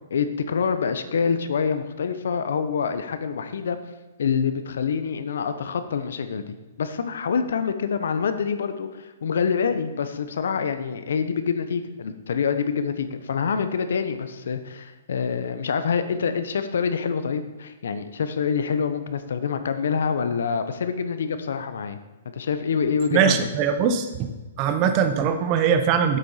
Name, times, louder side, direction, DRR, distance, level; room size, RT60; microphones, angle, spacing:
voice 1, 0.1-3.8 4.2-22.0 22.2-23.4, left 6 dB, 75° left, 10 dB, 0.9 m, -26 dB
voice 2, 23.1-24.3 24.6-26.2, right 7 dB, 25° right, 8 dB, 0.8 m, -21 dB
8.3 x 6.9 x 5.7 m, 1.2 s
hypercardioid pair, 170°, 0 cm